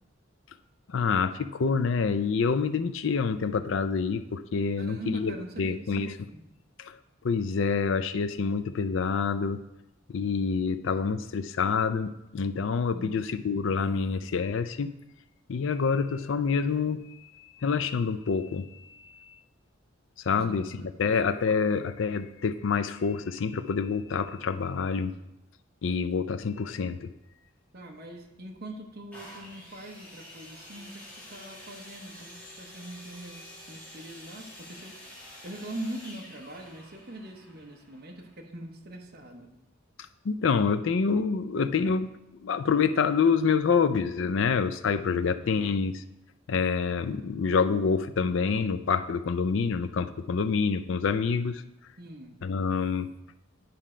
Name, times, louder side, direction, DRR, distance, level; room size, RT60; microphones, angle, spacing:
voice 1, 0.9-6.1 6.8-6.9 7.2-9.6 10.1-14.9 15.5-17.1 17.6-18.8 20.3-20.7 21.0-25.1 25.8-27.1 40.3-42.1 42.4-46.0 46.5-51.6 52.4-53.1, left 5 dB, 65° left, 11 dB, 0.4 m, -27 dB
voice 2, 4.8-6.4 12.9-13.6 20.3-21.2 27.7-34.9 35.4-39.5 45.4-45.7 52.0-52.4, right 1 dB, 50° right, 1 dB, 1.0 m, -42 dB
sound 1, 29.1-38.8 39.5-39.6, left 1 dB, 10° left, 2.1 m, -48 dB
9.3 x 4.3 x 5.0 m, 0.88 s
head